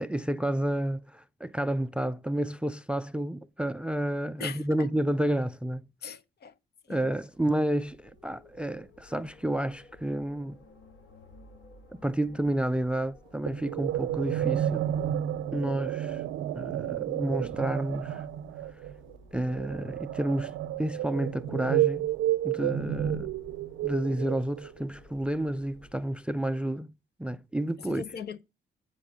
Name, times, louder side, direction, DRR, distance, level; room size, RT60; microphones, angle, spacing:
voice 1, 0.0-5.8 6.9-10.6 12.0-14.9 15.5-16.2 16.5-18.3 19.3-22.1 22.4-23.3 23.8-26.9 27.2-28.0, right 1 dB, 5° right, 0.4 m, -30 dB
voice 2, 4.4-4.9 6.0-6.5 6.9-7.0 27.9-28.4, left 7 dB, 55° left, 1.0 m, -39 dB
Wind, 7.3-26.3, left 2 dB, 75° left, 3.9 m, -55 dB
sound 1, 13.5-24.8, right 12 dB, 85° right, 0.6 m, -31 dB
7.7 x 5.5 x 6.5 m
cardioid pair, 90°, 20 cm